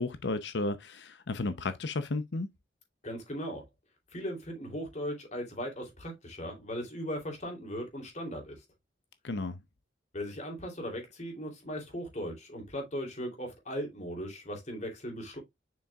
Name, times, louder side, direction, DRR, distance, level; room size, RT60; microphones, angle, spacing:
voice 1, 0.0-2.5 9.2-9.6, left 2 dB, 70° left, 0.7 m, -33 dB
voice 2, 3.0-3.6 4.1-8.6 10.1-15.4, equal, 40° left, 3.0 m, -38 dB
7.0 x 6.1 x 2.3 m
head